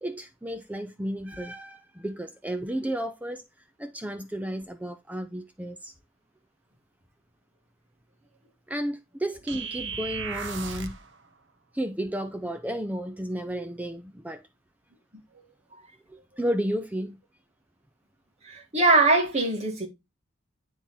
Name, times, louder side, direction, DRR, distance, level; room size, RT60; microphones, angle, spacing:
voice 1, 0.0-3.4 3.8-5.9 8.7-11.0 11.7-14.4 16.1-17.2, equal, 10° right, 0.4 m, -32 dB
sound 1, 9.5-11.1, right 5 dB, 60° right, 0.9 m, -35 dB
voice 2, 18.5-19.9, right 3 dB, 35° right, 1.9 m, -22 dB
9.8 x 3.5 x 4.1 m
head